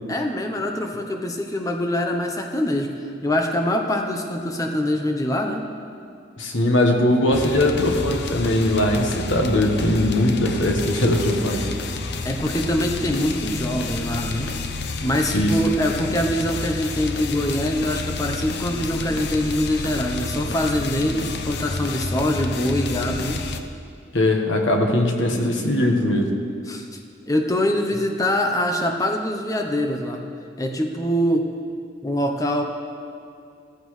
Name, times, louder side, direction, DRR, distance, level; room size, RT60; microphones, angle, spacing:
voice 1, 0.1-2.9 3.2-5.7 12.2-14.5 15.0-23.4 26.7-26.9 27.3-30.2 30.6-31.5 32.0-32.6, left 1 dB, 15° left, 3 dB, 0.8 m, -24 dB
voice 2, 6.4-11.7 15.3-15.6 24.1-26.3, left 1 dB, 75° left, 2 dB, 1.4 m, -20 dB
sound 1, 7.3-23.6, left 3 dB, 55° left, 0.7 m, -29 dB
16.0 x 14.5 x 3.3 m, 2.4 s
head